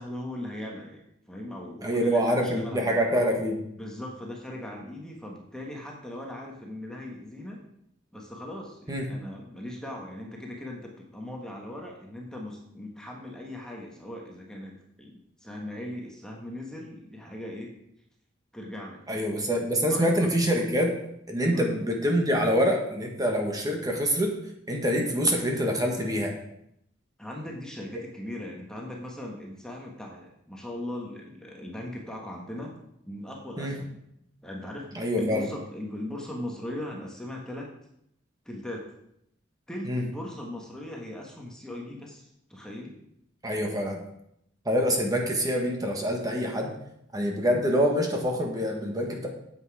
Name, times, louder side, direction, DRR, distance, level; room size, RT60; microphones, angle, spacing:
voice 1, 0.0-3.0 3.8-7.6 8.1-17.7 18.5-19.2 19.9-20.3 21.5-21.8 27.2-32.7 33.1-34.0 34.4-37.7 38.4-38.9 39.7-43.0, left 1 dB, 5° left, -1 dB, 1.5 m, -39 dB
voice 2, 1.8-3.5 8.9-9.0 19.1-20.9 21.3-24.3 24.7-26.3 33.6-33.7 34.9-35.5 39.8-40.0 43.4-44.0 44.6-46.7 47.1-49.3, equal, 20° right, 1 dB, 1.6 m, -25 dB
9.5 x 8.2 x 4.9 m, 0.76 s
head